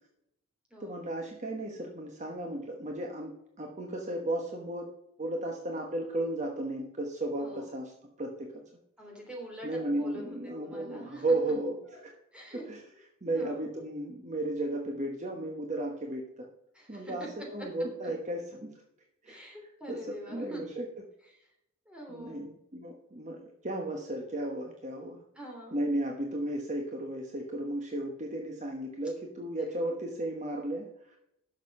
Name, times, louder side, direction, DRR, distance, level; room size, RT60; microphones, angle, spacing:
voice 1, 0.8-4.9 5.2-7.9 8.2-8.6 9.6-12.1 12.7-12.8 13.2-16.5 16.9-18.7 19.2-19.4 19.9-20.9 22.1-25.2 25.7-31.2, right 1 dB, 30° right, 2 dB, 1.1 m, -34 dB
voice 2, 7.4-7.8 9.0-10.2 10.6-11.4 11.9-12.0 12.3-13.0 13.3-13.7 16.7-17.3 17.6-17.7 18.0-18.1 19.3-20.6 21.3-21.5 21.8-22.4 25.3-25.8 29.7-29.8, right 1 dB, 5° right, -1 dB, 3.1 m, -45 dB
11.0 x 6.6 x 5.4 m, 0.78 s
head